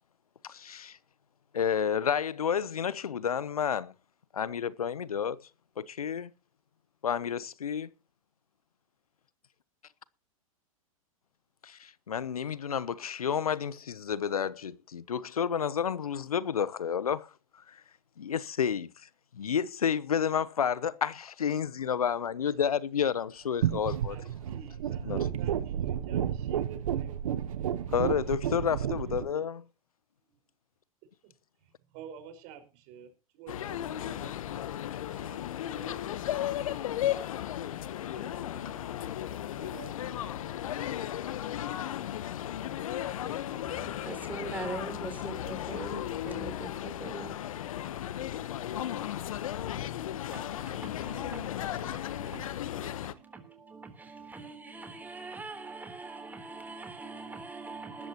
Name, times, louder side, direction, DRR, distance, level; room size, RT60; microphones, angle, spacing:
voice 1, 0.4-1.0 1.5-3.9 4.3-5.4 5.8-6.3 7.0-7.9 11.6-17.3 17.7-17.8 18.2-18.9 19.3-24.2 25.0-25.2 27.9-29.6, left 7 dB, 85° left, 0.8 m, -30 dB
sound 1, 23.6-29.3, right 10 dB, 70° right, 1.3 m, -31 dB
voice 2, 23.9-27.8 29.4-29.5 30.3-30.4 31.0-31.3 31.6-34.7 35.1-36.0 37.7-40.4 42.7-44.1 44.8-44.9 45.7-45.9 51.9-52.5 53.0-53.8, right 8 dB, 45° right, 5.1 m, -52 dB
sound 2, 33.5-53.1, left 11 dB, 70° left, 1.1 m, -35 dB
voice 3, 43.7-47.3 50.3-52.4 53.2-58.1, right 3 dB, 10° right, 3.7 m, -43 dB
19.0 x 13.5 x 3.0 m
hypercardioid pair, 105°, 18 cm